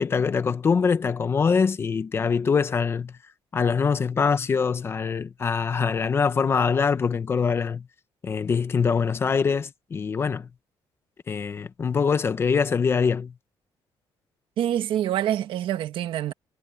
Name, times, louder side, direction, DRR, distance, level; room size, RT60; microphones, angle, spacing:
voice 1, 0.0-3.1 3.5-7.8 8.2-10.5 11.3-13.3, left 5 dB, 25° left, 0.7 m, -23 dB
voice 2, 14.6-16.3, right 11 dB, 65° right, 1.5 m, -26 dB
cardioid pair, 180°, 9 cm